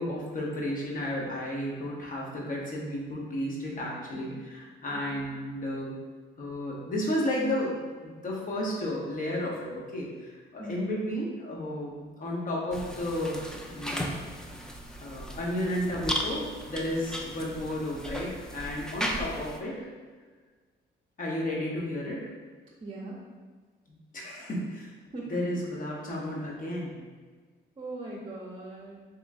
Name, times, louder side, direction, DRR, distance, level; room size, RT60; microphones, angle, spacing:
voice 1, 0.0-5.9 6.4-13.4 13.7-14.2 15.0-19.9 21.2-22.3 24.1-24.9 25.3-26.9, left 1 dB, 45° left, -3 dB, 1.0 m, -33 dB
voice 2, 4.9-5.4 10.6-10.8 22.8-23.2 25.1-25.4 27.8-29.0, right 2 dB, 30° right, -4 dB, 0.7 m, -40 dB
sound 1, 12.7-19.6, equal, 5° left, 0.4 m, -36 dB
3.0 x 3.0 x 3.6 m, 1.4 s
cardioid pair, 90°, 20 cm